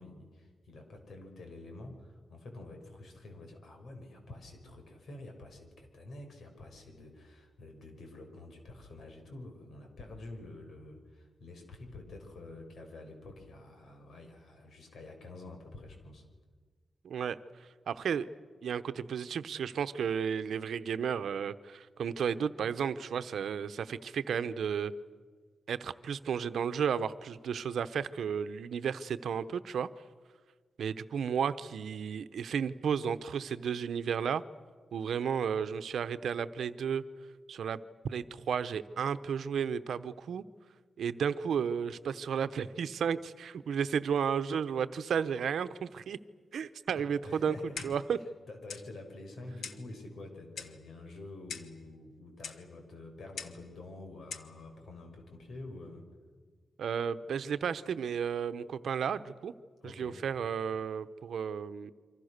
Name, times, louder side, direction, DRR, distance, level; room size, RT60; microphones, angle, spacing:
voice 1, 0.0-16.2 47.0-56.0 59.8-60.2, left 2 dB, 70° left, 4 dB, 6.2 m, -48 dB
voice 2, 17.0-17.4 17.9-18.3 18.6-24.9 25.7-29.9 30.8-34.4 34.9-37.0 37.5-37.8 38.0-40.4 41.0-46.2 46.5-47.5 47.8-48.2 56.8-59.5 60.0-61.9, right 7 dB, 85° right, 12 dB, 1.0 m, -33 dB
Clock, 47.8-48.1 48.7-48.9 49.6-49.9 50.6-50.8 51.5-51.8 52.4-52.6 53.4-53.6 54.3-54.5, left 6 dB, 85° left, 1.6 m, -42 dB
28.0 x 25.5 x 6.7 m, 1.5 s
wide cardioid pair, 145°, 0 cm